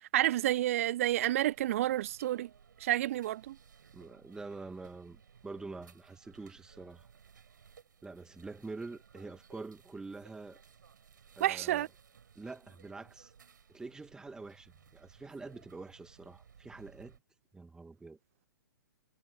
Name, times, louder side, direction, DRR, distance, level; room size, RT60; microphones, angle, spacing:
voice 1, 0.1-2.5 2.8-3.6 11.4-11.9, right 14 dB, 40° right, 0.4 m, -29 dB
sound 1, 1.5-17.2, right 7 dB, 60° right, 6.1 m, -60 dB
voice 2, 3.9-7.1 8.0-10.6 11.4-11.9 12.4-13.3 13.7-17.2 17.5-18.2, right 3 dB, 5° right, 2.1 m, -46 dB
figure-of-eight pair, 120°, 11 cm